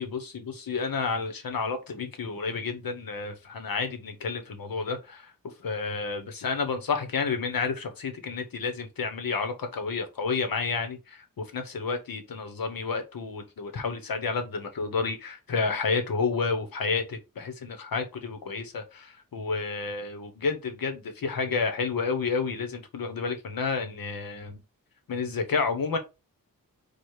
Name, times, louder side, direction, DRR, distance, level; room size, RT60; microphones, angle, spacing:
voice 1, 0.0-5.3 5.6-24.6 25.1-26.0, left 4 dB, 85° left, 1.1 m, -30 dB
4.8 x 2.4 x 4.6 m
wide cardioid pair, 100°, 34 cm